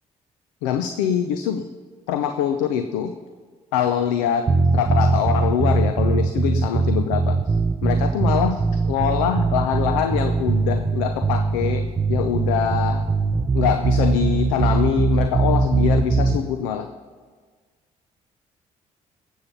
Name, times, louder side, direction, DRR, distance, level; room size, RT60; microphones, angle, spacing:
voice 1, 0.6-1.7 2.1-3.1 3.7-4.5 4.7-7.5 7.8-13.0 13.5-16.9, left 9 dB, 85° left, 9 dB, 0.5 m, -24 dB
sound 1, 4.5-16.4, right 4 dB, 30° right, 1.1 m, -21 dB
18.5 x 7.3 x 5.8 m, 1.5 s
hypercardioid pair, 45°, 17 cm